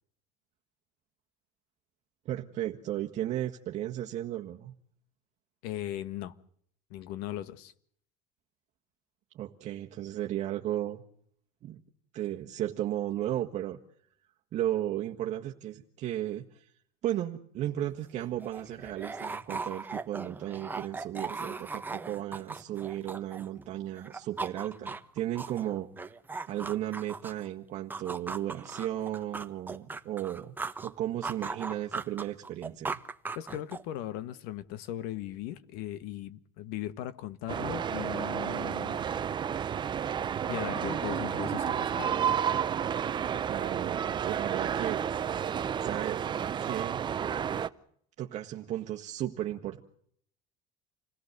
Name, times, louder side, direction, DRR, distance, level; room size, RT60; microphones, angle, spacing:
voice 1, 2.2-4.7 9.3-11.0 11.6-11.8 12.1-13.8 14.5-16.7 17.0-25.9 26.5-30.5 30.8-33.0 43.5-45.4 45.8-46.3 46.6-47.0 48.2-49.8, right 12 dB, 50° right, 1.6 m, -35 dB
voice 2, 5.6-6.3 6.9-7.7 33.3-39.0 40.5-42.2, left 13 dB, 75° left, 1.5 m, -38 dB
sound 1, 17.8-17.9 18.2-23.7 24.0-27.5 27.9-30.9 31.2-34.0, right 4 dB, 10° right, 1.1 m, -38 dB
sound 2, 37.5-47.7, right 8 dB, 30° right, 0.9 m, -31 dB
28.0 x 17.5 x 6.7 m
cardioid pair, 130°, 16 cm